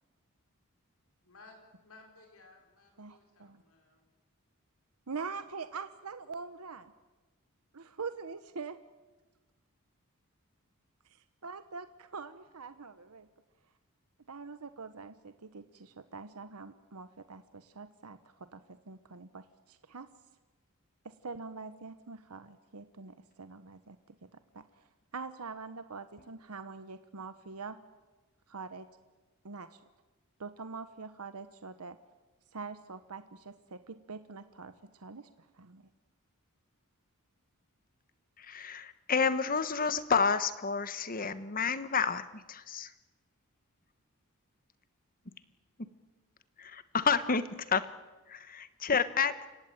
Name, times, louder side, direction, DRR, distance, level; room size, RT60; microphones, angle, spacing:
voice 1, 1.2-4.1, left 3 dB, 70° left, 2 dB, 4.9 m, -58 dB
voice 2, 3.0-3.6 5.1-6.9 7.7-8.8 11.0-13.3 14.3-20.1 21.0-27.8 28.5-28.9 29.4-29.8 30.4-32.0 32.5-35.9, right 4 dB, 85° right, 11 dB, 1.0 m, -44 dB
voice 3, 38.4-42.9 45.8-45.9 46.6-47.9 48.3-49.3, left 5 dB, 40° left, 12 dB, 1.2 m, -30 dB
29.0 x 16.5 x 9.1 m, 1.2 s
head